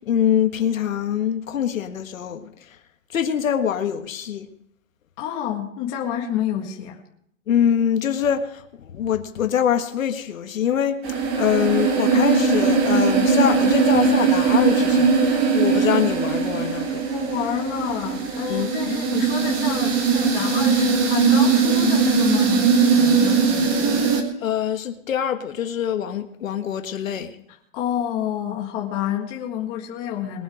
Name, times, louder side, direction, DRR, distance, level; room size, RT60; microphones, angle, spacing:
voice 1, 0.0-2.5 3.1-4.5 7.5-11.0 11.3-17.1 18.5-19.0 24.4-27.4, left 9 dB, 85° left, 1.7 m, -24 dB
voice 2, 5.2-7.0 17.1-24.0 27.7-30.4, left 9 dB, 20° left, 1.9 m, -29 dB
sound 1, 11.0-24.2, right 5 dB, 20° right, 1.7 m, -20 dB
22.0 x 8.0 x 5.1 m
hypercardioid pair, 175°, 39 cm